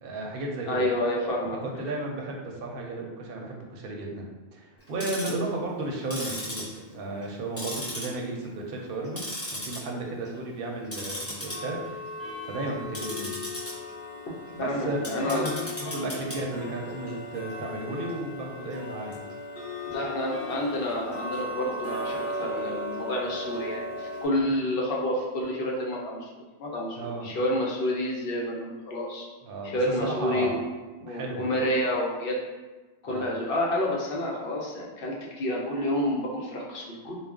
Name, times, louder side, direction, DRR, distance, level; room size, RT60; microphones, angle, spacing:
voice 1, 0.0-0.9 1.6-4.3 4.5-9.2 9.5-12.1 12.4-13.4 14.5-19.2 27.0-27.4 29.4-30.6 31.1-31.5 33.1-33.3, right 2 dB, 65° right, 0 dB, 0.7 m, -34 dB
voice 2, 0.7-1.6 14.6-15.5 19.9-29.3 29.6-30.6 31.0-32.4 33.0-37.2, left 1 dB, 70° left, -3 dB, 0.8 m, -29 dB
Tick-tock, 4.8-5.4 6.0-7.3 7.6-8.4 8.8-9.8 10.2-10.4 10.8-24.3, left 1 dB, 15° left, 0.6 m, -36 dB
2.3 x 2.0 x 3.5 m, 1.2 s
omnidirectional pair, 1.1 m